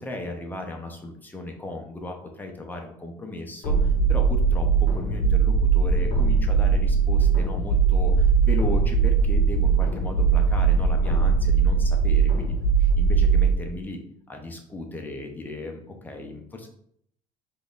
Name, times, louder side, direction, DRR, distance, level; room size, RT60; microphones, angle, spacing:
voice 1, 0.0-12.5 12.8-14.0 14.3-16.7, left 2 dB, 10° left, 2 dB, 0.7 m, -36 dB
sound 1, 3.6-13.5, right 5 dB, 70° left, 1.9 m, -20 dB
3.7 x 3.6 x 3.9 m, 0.68 s
cardioid pair, 145°, 15 cm